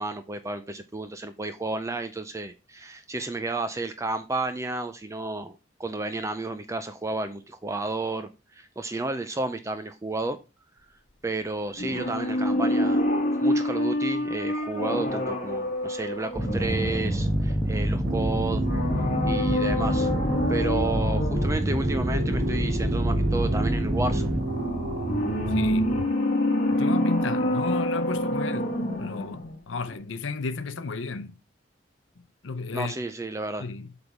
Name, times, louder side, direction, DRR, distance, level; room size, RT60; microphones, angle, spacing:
voice 1, 0.0-10.4 11.2-13.1 13.4-18.6 18.9-20.1 20.5-24.3 32.7-33.7, right 2 dB, 15° right, 0.5 m, -32 dB
sound 1, 11.8-17.5 18.6-21.6 24.4-29.6 29.9-30.0, left 1 dB, 45° left, 1.7 m, -27 dB
sound 2, 16.3-24.4, equal, ahead, 1.4 m, -27 dB
sound 3, 18.0-26.0, right 3 dB, 60° right, 0.7 m, -32 dB
voice 2, 25.5-25.9 26.7-31.3 32.4-32.9 33.6-33.9, left 4 dB, 85° left, 0.7 m, -33 dB
7.9 x 3.5 x 5.9 m
head